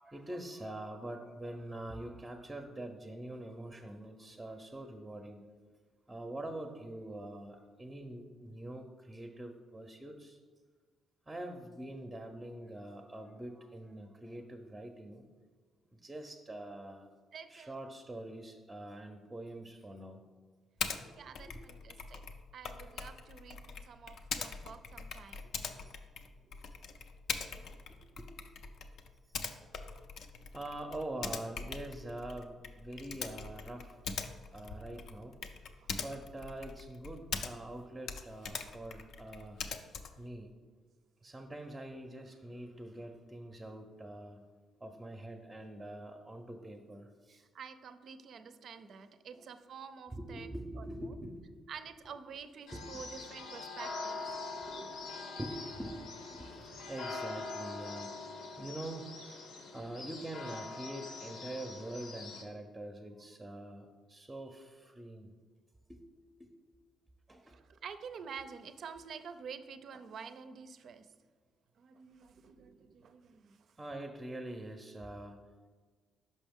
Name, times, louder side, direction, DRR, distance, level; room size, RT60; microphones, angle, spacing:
voice 1, 0.0-5.4 6.1-10.4 11.3-15.3 15.9-17.1 17.5-20.2 20.8-21.9 25.8-25.9 27.6-28.7 30.5-34.0 34.5-35.4 36.0-39.6 40.2-40.5 41.2-44.4 44.8-47.4 49.3-49.5 50.1-51.5 52.7-52.9 54.5-54.8 55.4-58.3 58.6-59.1 59.7-65.3 65.9-66.0 66.4-66.5 67.3-67.6 73.8-75.4, right 1 dB, 10° right, 3 dB, 0.5 m, -45 dB
voice 2, 17.3-17.8 20.9-22.2 22.5-25.5 25.8-25.9 35.8-35.9 47.3-50.5 50.8-51.1 51.7-54.3 54.7-54.9 67.4-71.1 71.8-73.7, right 6 dB, 60° right, 10 dB, 0.4 m, -49 dB
Typing, 20.8-21.0 21.3-37.8 38.0-40.3, left 5 dB, 70° left, 0.4 m, -42 dB
sound 1, 52.7-62.4, left 3 dB, 90° left, 0.9 m, -44 dB
5.4 x 5.3 x 3.5 m, 1.4 s
cardioid pair, 90°, 0 cm